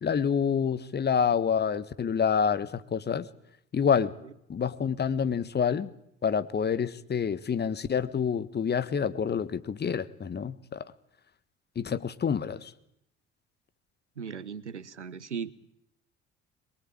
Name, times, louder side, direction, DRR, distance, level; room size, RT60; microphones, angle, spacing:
voice 1, 0.0-3.3 3.7-4.1 4.5-5.9 6.2-10.8 11.7-12.7, left 7 dB, 30° left, 14 dB, 1.6 m, -27 dB
voice 2, 14.2-15.5, right 6 dB, 85° right, 19 dB, 0.9 m, -37 dB
23.5 x 22.5 x 8.8 m, 0.77 s
figure-of-eight pair, 55°, 34 cm